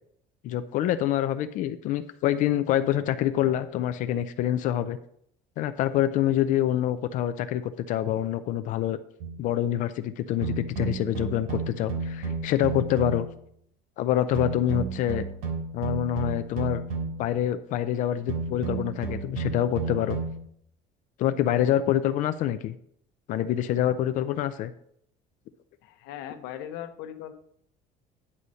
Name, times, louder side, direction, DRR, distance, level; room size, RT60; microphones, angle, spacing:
voice 1, 0.4-5.0 5.6-9.0 9.4-13.3 14.0-15.2 15.7-16.8 17.2-20.2 21.2-22.8 23.3-24.7, left 11 dB, 50° left, 11 dB, 0.4 m, -26 dB
sound 1, 9.2-9.5 10.4-13.4 14.3-17.3 18.3-20.5, right 4 dB, 65° right, 3.0 m, -32 dB
voice 2, 25.8-27.3, left 11 dB, 85° left, 8 dB, 0.9 m, -39 dB
9.7 x 4.1 x 6.3 m, 0.69 s
cardioid pair, 180°, 17 cm